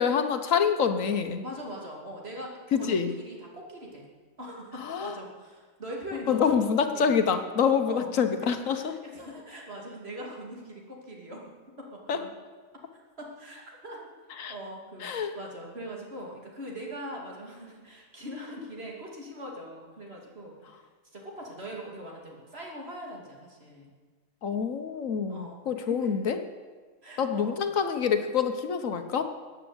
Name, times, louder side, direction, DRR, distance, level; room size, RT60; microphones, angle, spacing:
voice 1, 0.0-1.4 2.7-3.1 4.8-5.1 6.1-9.0 12.1-12.2 14.4-14.6 15.0-15.3 24.4-26.4 27.2-29.2, left 6 dB, 75° left, 8 dB, 1.4 m, -26 dB
voice 2, 1.4-4.1 4.4-7.2 7.9-8.1 8.8-11.5 11.8-12.3 12.7-12.8 13.2-14.1 14.5-20.8 21.1-23.9 25.3-25.6 25.9-26.1 27.0-27.6, equal, 50° right, -1 dB, 3.0 m, -41 dB
15.0 x 9.0 x 8.0 m, 1.5 s
omnidirectional pair, 1.4 m